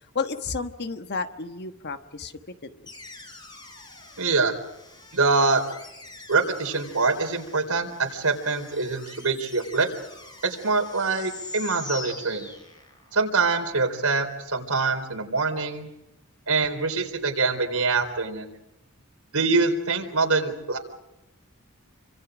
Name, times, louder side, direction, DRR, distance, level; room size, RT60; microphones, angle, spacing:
voice 1, 0.1-2.3 2.6-2.9, left 4 dB, 50° left, 8 dB, 1.3 m, -32 dB
sound 1, 2.9-13.1, left 2 dB, 20° left, 4.7 m, -44 dB
voice 2, 4.2-4.5 5.1-5.6 6.3-9.9 10.4-12.5 13.1-15.9 16.5-18.5 19.3-20.8, right 4 dB, 85° right, 5 dB, 3.9 m, -24 dB
29.0 x 25.5 x 5.1 m, 0.89 s
head